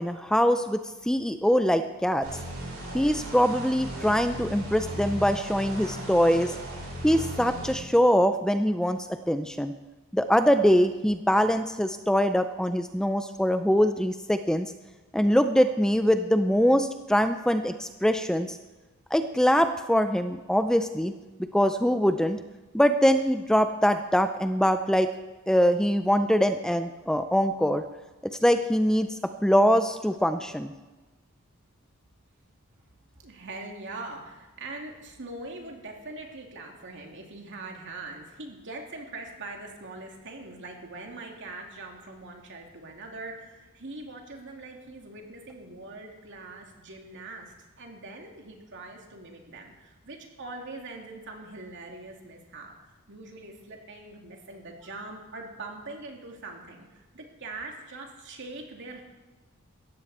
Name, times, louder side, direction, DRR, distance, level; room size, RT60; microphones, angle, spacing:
voice 1, 0.0-2.3 2.9-6.5 7.0-9.7 10.1-14.7 15.1-18.6 19.1-21.1 21.5-22.4 22.7-25.1 25.5-27.8 28.2-30.7, equal, 5° left, 9 dB, 0.4 m, -23 dB
sound 1, 2.2-7.7, right 1 dB, 85° right, 5.6 m, -37 dB
voice 2, 33.2-59.0, right 2 dB, 60° right, 1 dB, 2.7 m, -42 dB
17.0 x 14.5 x 4.3 m, 1.2 s
head